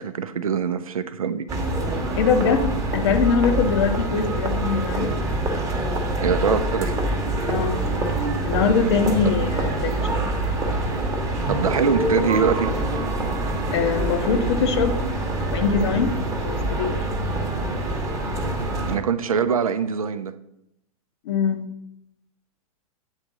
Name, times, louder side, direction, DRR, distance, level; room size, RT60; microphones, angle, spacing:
voice 1, 0.0-1.5 6.2-7.0 11.5-12.7 18.9-20.3, right 6 dB, 70° right, 12 dB, 0.5 m, -23 dB
sound 1, 1.5-19.0, right 1 dB, 15° right, 1.0 m, -25 dB
voice 2, 2.2-5.1 7.5-7.8 8.4-10.0 13.7-15.0 15.5-16.2 16.4-17.0 21.3-21.6, left 5 dB, 45° left, 7 dB, 0.7 m, -22 dB
9.1 x 3.4 x 3.9 m, 0.79 s
figure-of-eight pair, 100°, 19 cm